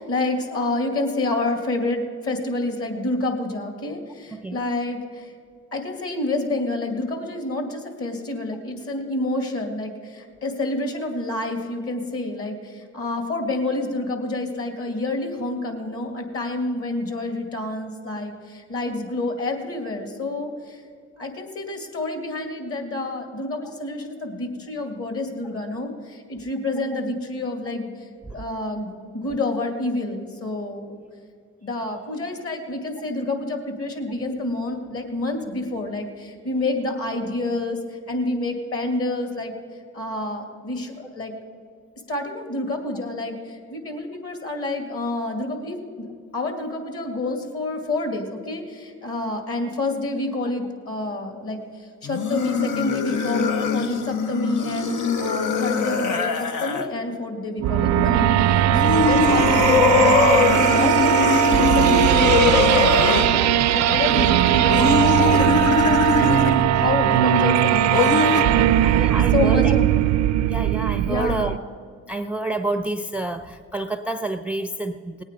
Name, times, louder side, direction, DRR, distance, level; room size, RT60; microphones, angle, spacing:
voice 1, 0.0-5.3 5.7-20.8 21.2-30.9 31.6-39.5 39.9-41.3 42.1-46.1 46.3-66.0 66.7-69.9 71.1-71.6, left 2 dB, 50° left, 5 dB, 2.4 m, -28 dB
voice 2, 4.3-4.7 9.4-9.5 28.3-28.4 63.4-63.5 68.8-69.7 70.5-71.6 72.1-75.2, right 2 dB, 5° right, 9 dB, 0.5 m, -29 dB
sound 1, 52.0-56.9 58.7-63.3 64.7-66.6 67.9-68.4, left 5 dB, 85° left, 1.0 m, -21 dB
sound 2, 57.6-71.6, right 11 dB, 65° right, 0.4 m, -19 dB
19.0 x 8.9 x 5.2 m, 2.1 s
cardioid pair, 90°, 30 cm